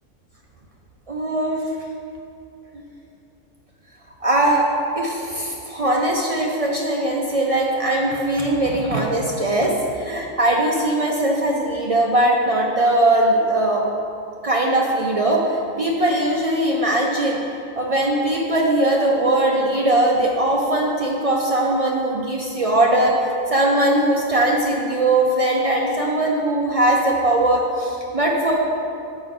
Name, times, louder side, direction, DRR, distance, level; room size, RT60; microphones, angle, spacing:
voice 1, 1.1-1.6 2.7-2.8 4.2-4.7 5.0-13.9 14.4-17.4 17.8-28.6, right 1 dB, 55° right, -1 dB, 0.4 m, -20 dB
6.4 x 5.1 x 4.7 m, 2.5 s
omnidirectional pair, 1.3 m